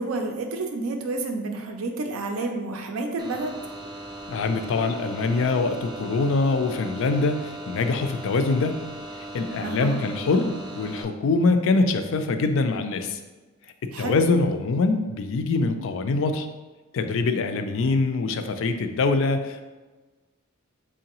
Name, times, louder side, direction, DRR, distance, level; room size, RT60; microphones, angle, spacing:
voice 1, 0.0-3.6 9.6-10.0 13.9-14.2, right 3 dB, 80° right, 4 dB, 0.4 m, -30 dB
sound 1, 3.2-11.0, right 1 dB, 20° right, 0.4 m, -38 dB
voice 2, 4.3-8.8 9.3-13.2 14.0-16.5 16.9-19.7, left 3 dB, 65° left, 8 dB, 0.4 m, -24 dB
3.7 x 3.2 x 2.9 m, 1.2 s
head